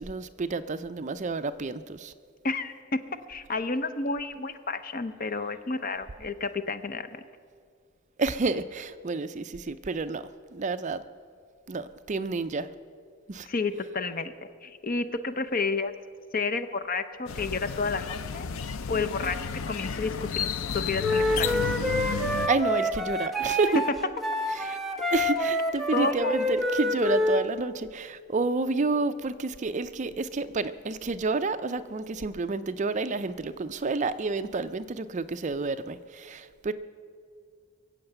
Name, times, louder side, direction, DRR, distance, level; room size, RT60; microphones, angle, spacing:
voice 1, 0.0-2.1 8.2-10.2 10.5-11.0 11.7-12.7 13.3-13.5 22.5-23.8 24.5-24.8 25.1-36.7, right 3 dB, 35° right, 11 dB, 0.5 m, -29 dB
voice 2, 2.4-7.2 13.5-14.3 14.6-15.9 16.3-18.5 18.9-21.6 23.7-23.8 25.9-26.4, left 3 dB, 45° left, 10 dB, 0.7 m, -30 dB
sound 1, 17.3-22.5, left 6 dB, 80° left, 0.5 m, -32 dB
Wind instrument woodwind instrument, 21.0-27.4, left 1 dB, ahead, 0.9 m, -27 dB
23.0 x 7.9 x 7.9 m, 2.1 s
head